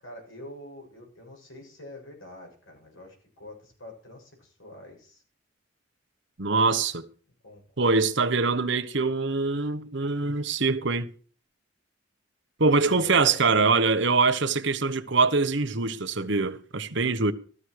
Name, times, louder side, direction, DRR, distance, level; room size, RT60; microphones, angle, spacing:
voice 1, 0.0-5.2 7.4-7.9 12.8-13.7, left 2 dB, 85° left, 7.4 m, -45 dB
voice 2, 6.4-7.1 7.8-11.1 12.6-17.3, right 4 dB, 65° right, 1.2 m, -23 dB
14.5 x 13.5 x 4.8 m
head